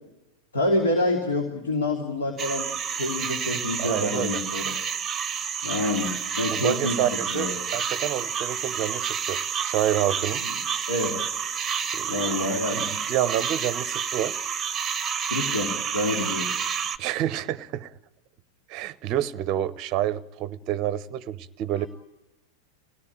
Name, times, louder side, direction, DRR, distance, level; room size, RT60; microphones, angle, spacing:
voice 1, 0.5-4.7 5.6-7.5 10.4-10.6 10.9-11.5 12.1-12.9 15.2-16.5 21.7-21.9, left 2 dB, 65° left, 2.8 m, -28 dB
sound 1, 2.4-17.0, right 7 dB, 20° right, 0.9 m, -29 dB
voice 2, 3.8-4.4 6.5-10.4 11.9-12.4 12.7-14.4 17.0-17.9 18.7-21.9, right 12 dB, 40° right, 0.7 m, -28 dB
24.5 x 17.5 x 9.0 m
figure-of-eight pair, 90°, 0 cm